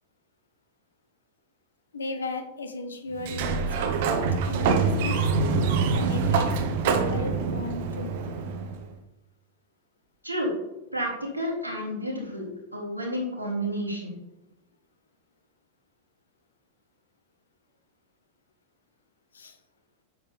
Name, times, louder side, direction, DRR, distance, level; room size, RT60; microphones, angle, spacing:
voice 1, 1.9-5.2 5.9-6.5 6.8-8.2 19.3-19.6, left 3 dB, 70° left, 7 dB, 1.2 m, -36 dB
Sliding door, 3.2-8.8, right 4 dB, 50° right, 1.1 m, -25 dB
voice 2, 11.3-12.5 12.7-14.1, equal, 90° right, -3 dB, 3.0 m, -30 dB
9.6 x 7.2 x 3.5 m, 0.93 s
figure-of-eight pair, 90°, 0 cm